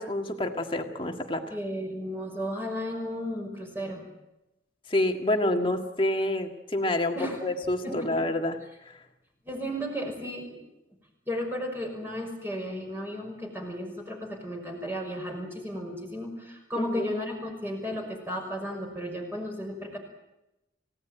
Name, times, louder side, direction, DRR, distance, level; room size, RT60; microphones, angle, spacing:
voice 1, 0.0-1.5 4.9-7.1 7.4-8.6 8.9-9.0 16.8-17.1, left 1 dB, 25° left, 4 dB, 1.9 m, -28 dB
voice 2, 1.5-4.0 7.1-7.4 7.8-8.3 9.5-10.6 11.3-20.0, equal, 10° right, 2 dB, 5.7 m, -34 dB
30.0 x 16.5 x 9.2 m, 0.94 s
head